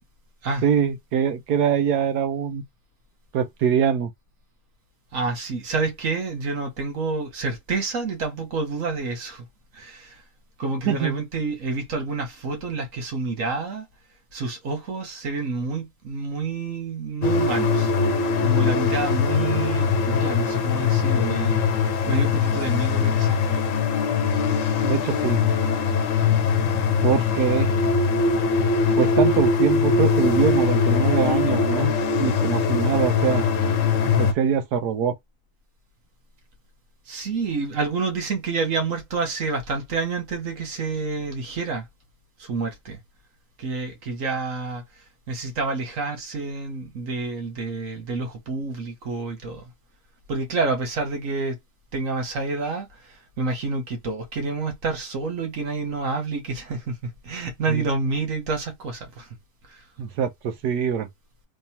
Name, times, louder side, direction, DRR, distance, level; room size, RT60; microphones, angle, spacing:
voice 1, 0.6-2.6 3.3-4.1 10.9-11.2 24.8-25.4 27.0-27.7 29.0-31.9 32.2-33.4 34.2-35.1 57.7-57.8 60.0-61.1, right 7 dB, 80° right, 1.4 m, -23 dB
voice 2, 5.1-9.4 9.7-10.2 10.6-13.9 14.3-17.9 18.4-23.8 37.1-41.8 42.4-43.0 43.6-44.8 45.3-49.7 50.3-51.6 51.9-59.3 59.7-59.8, right 4 dB, 55° right, 1.5 m, -28 dB
sound 1, 17.2-34.3, left 5 dB, 60° left, 1.0 m, -21 dB
3.6 x 3.2 x 2.8 m
omnidirectional pair, 1.7 m